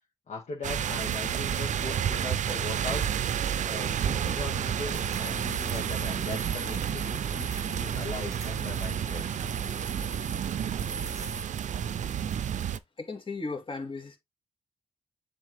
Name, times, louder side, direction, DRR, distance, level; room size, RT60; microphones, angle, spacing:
voice 1, 0.3-3.1 3.6-9.4, left 3 dB, 55° left, 1.9 m, -39 dB
sound 1, 0.6-12.8, right 9 dB, 65° right, 0.5 m, -30 dB
sound 2, 3.5-11.4, right 3 dB, 25° right, 0.8 m, -42 dB
voice 2, 13.0-14.2, left 3 dB, 40° left, 2.1 m, -36 dB
7.3 x 3.6 x 3.5 m
supercardioid pair, 55°, 14 cm